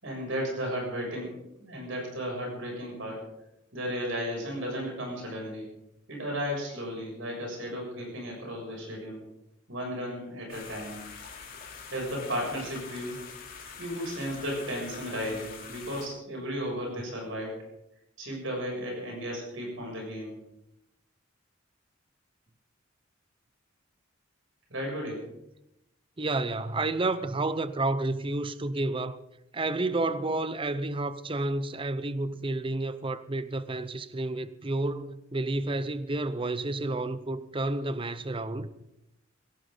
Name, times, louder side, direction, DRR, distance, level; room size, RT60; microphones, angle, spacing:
voice 1, 0.0-3.3 3.7-5.7 6.1-9.2 9.7-11.0 11.9-13.2 13.8-17.7 18.2-20.3 24.7-25.2, equal, 65° right, 7.1 m, -34 dB
sound 1, 10.5-16.1, left 5 dB, 45° left, 3.3 m, -44 dB
voice 2, 26.2-29.2 29.5-38.7, right 2 dB, 25° right, 0.7 m, -30 dB
18.0 x 17.5 x 3.9 m
head